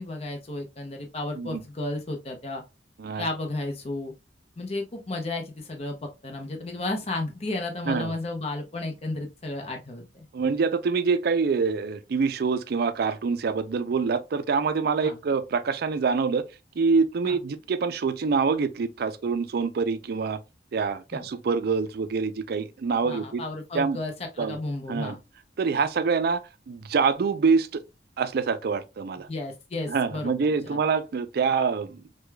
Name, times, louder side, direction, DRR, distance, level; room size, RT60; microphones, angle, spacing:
voice 1, 0.0-2.6 3.2-4.1 4.6-10.2 15.0-15.2 17.2-17.4 21.1-21.3 23.0-25.2 29.3-30.8, left 2 dB, 35° left, 0.6 m, -33 dB
voice 2, 10.3-16.4 16.8-20.4 20.7-23.4 23.7-24.0 24.4-24.6 24.9-25.2 25.6-27.8 28.2-29.3 29.9-32.2, right 5 dB, 60° right, 0.4 m, -25 dB
4.7 x 2.2 x 2.2 m
head